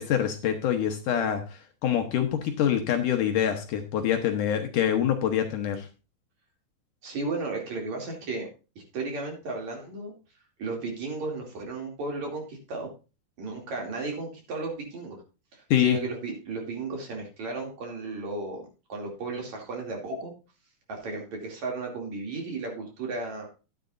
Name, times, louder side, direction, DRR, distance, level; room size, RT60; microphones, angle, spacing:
voice 1, 0.0-5.9 15.7-16.0, left 9 dB, 70° left, 5 dB, 2.3 m, -25 dB
voice 2, 7.0-8.5 8.9-10.1 10.6-12.9 13.4-15.2 15.5-18.6 18.9-20.3 20.9-23.5, right 3 dB, 55° right, 1 dB, 3.7 m, -34 dB
13.0 x 9.7 x 2.6 m, 0.31 s
omnidirectional pair, 4.2 m